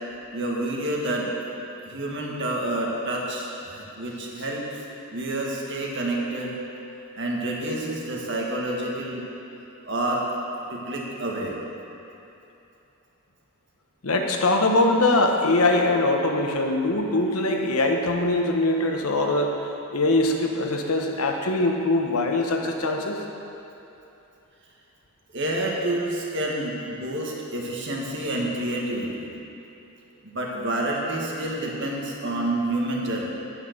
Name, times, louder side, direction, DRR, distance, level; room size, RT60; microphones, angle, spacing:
voice 1, 0.3-1.3 1.9-4.8 5.1-6.6 7.2-9.2 9.8-10.2 10.7-11.6 25.3-29.3 30.2-33.3, right 1 dB, 55° right, -2 dB, 1.8 m, -28 dB
voice 2, 14.0-19.6 19.9-23.2, left 2 dB, 85° left, 2 dB, 1.2 m, -22 dB
9.3 x 8.9 x 6.7 m, 2.9 s
head